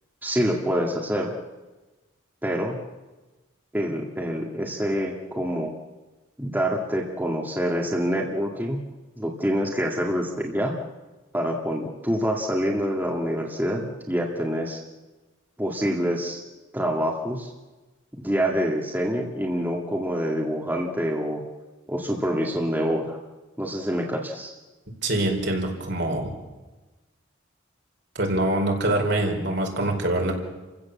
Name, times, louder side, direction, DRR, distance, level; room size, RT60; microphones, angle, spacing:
voice 1, 0.2-1.3 2.4-2.8 3.7-5.7 6.4-8.8 9.2-10.7 11.3-14.8 15.6-16.4 16.7-17.5 18.2-21.4 21.9-23.2 23.6-24.5, equal, 10° right, -1 dB, 2.0 m, -26 dB
voice 2, 25.0-26.3 28.1-30.3, right 1 dB, 60° right, 2 dB, 4.4 m, -24 dB
29.5 x 16.0 x 7.2 m, 1.2 s
head